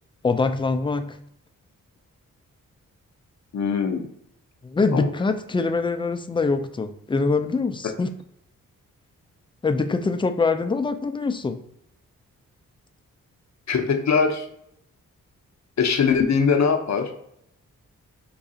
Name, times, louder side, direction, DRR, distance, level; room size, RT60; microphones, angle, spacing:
voice 1, 0.2-1.2 4.6-8.1 9.6-11.6, left 4 dB, 15° left, 8 dB, 0.4 m, -24 dB
voice 2, 3.5-4.0 4.9-5.1 13.7-14.5 15.8-17.1, left 5 dB, 50° left, 5 dB, 0.7 m, -21 dB
4.7 x 2.3 x 2.7 m, 0.74 s
supercardioid pair, 45°, 35 cm